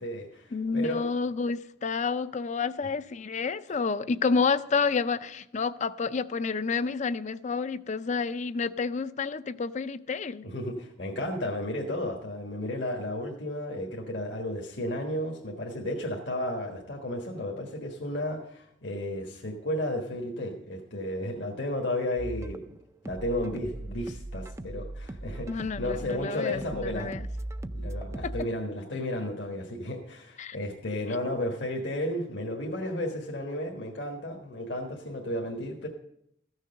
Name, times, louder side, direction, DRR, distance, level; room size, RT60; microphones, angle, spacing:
voice 1, 0.0-1.0 10.4-22.7 23.0-27.1 27.7-35.9, left 1 dB, 75° left, 1.5 m, -33 dB
voice 2, 0.5-10.5 25.5-27.2 28.2-28.3 30.4-30.6, left 4 dB, 40° left, 0.5 m, -29 dB
sound 1, 22.2-28.4, right 1 dB, 15° right, 0.4 m, -38 dB
14.5 x 6.5 x 6.5 m
head